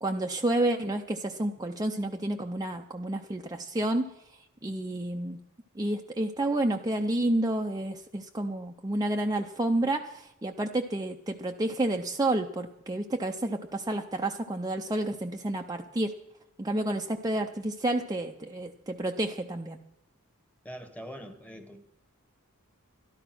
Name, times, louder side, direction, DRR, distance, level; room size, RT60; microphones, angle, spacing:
voice 1, 0.0-4.1 4.6-5.4 5.8-16.1 16.6-19.8, right 1 dB, 15° right, 0.6 m, -30 dB
voice 2, 20.6-21.8, equal, 5° left, 1.3 m, -43 dB
13.0 x 12.0 x 6.0 m
head